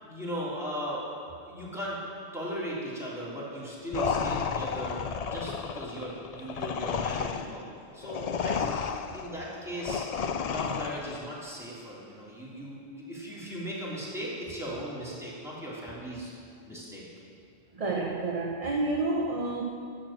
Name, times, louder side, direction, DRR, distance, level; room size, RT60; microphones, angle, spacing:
voice 1, 0.0-1.1 1.4-2.0 2.3-5.0 5.3-7.6 7.9-10.0 10.4-16.3 16.6-17.0, equal, 5° right, -8 dB, 3.2 m, -37 dB
sound 1, 3.9-11.3, left 6 dB, 50° left, 0.5 m, -32 dB
voice 2, 17.7-19.6, right 2 dB, 35° right, -1 dB, 0.9 m, -29 dB
11.5 x 7.5 x 7.3 m, 2.3 s
omnidirectional pair, 1.1 m